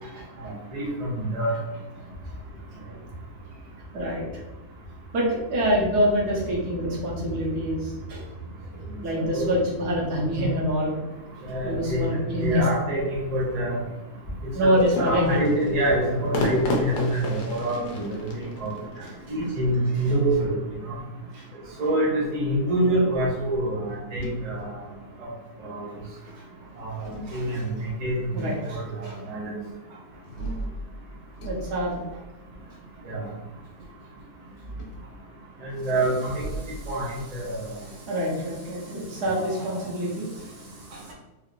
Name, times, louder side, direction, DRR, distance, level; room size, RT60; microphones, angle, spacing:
voice 1, 0.4-1.5 9.1-9.5 11.4-12.1 12.4-13.7 14.6-18.7 19.3-21.0 21.8-24.8 25.6-25.9 26.8-27.0 27.3-29.5 33.1-33.2 35.6-36.5 36.9-37.7 39.3-39.5, right 1 dB, 30° right, -5 dB, 0.8 m, -26 dB
voice 2, 3.9-4.4 5.1-8.2 9.0-10.9 11.6-12.7 14.5-15.4 19.0-19.1 21.3-21.4 26.2-26.4 27.0-27.6 28.3-29.2 29.9-30.0 31.4-32.2 36.6-36.9 37.5-41.1, equal, 75° right, -4 dB, 1.4 m, -27 dB
sound 1, 14.8-20.4, left 2 dB, 80° left, 1.3 m, -33 dB
sound 2, 23.9-25.3 26.6-28.0 30.2-32.8 34.4-35.1 36.3-38.7, right 1 dB, 65° left, 0.7 m, -39 dB
3.7 x 2.9 x 2.5 m, 1.0 s
omnidirectional pair, 1.7 m